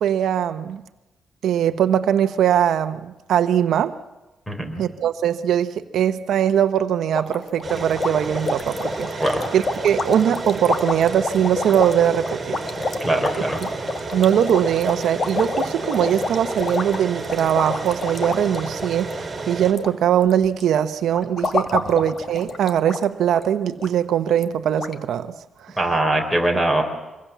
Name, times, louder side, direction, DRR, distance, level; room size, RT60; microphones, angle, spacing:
voice 1, 0.0-0.8 1.4-3.9 4.8-9.2 9.5-12.6 14.1-25.3 25.6-25.7, right 9 dB, 80° right, 0.9 m, -21 dB
voice 2, 4.5-4.8 9.2-9.5 13.0-13.6 21.8-21.9 25.8-26.8, right 1 dB, 5° left, 4.3 m, -22 dB
sound 1, 7.1-19.9 20.2-20.6 21.1-23.0 23.3-23.4 23.8-23.9 24.4-24.5 24.8-24.9, left 3 dB, 35° left, 1.6 m, -28 dB
sound 2, 7.6-19.7, right 3 dB, 30° right, 4.5 m, -32 dB
25.5 x 21.5 x 7.3 m
cardioid pair, 135°, 0 cm